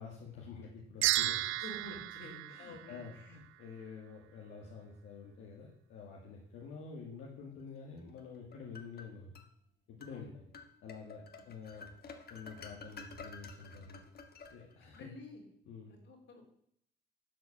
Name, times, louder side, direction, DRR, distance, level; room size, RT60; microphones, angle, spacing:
voice 1, 0.0-1.6 2.5-9.4 9.9-10.4 10.8-11.9 12.3-14.0 14.5-15.1 15.7-15.9, left 5 dB, 90° left, -2 dB, 2.0 m, -48 dB
sound 1, 1.0-3.5, right 16 dB, 85° right, 0.4 m, -34 dB
voice 2, 1.6-3.4 10.1-10.3 14.9-15.4 15.9-16.4, left 1 dB, 70° left, 1 dB, 3.7 m, -50 dB
sound 2, 8.2-9.5 10.0-10.2 10.5-15.0, left 4 dB, 50° left, 1.4 m, -51 dB
11.5 x 4.9 x 7.3 m, 0.69 s
cardioid pair, 90°, 20 cm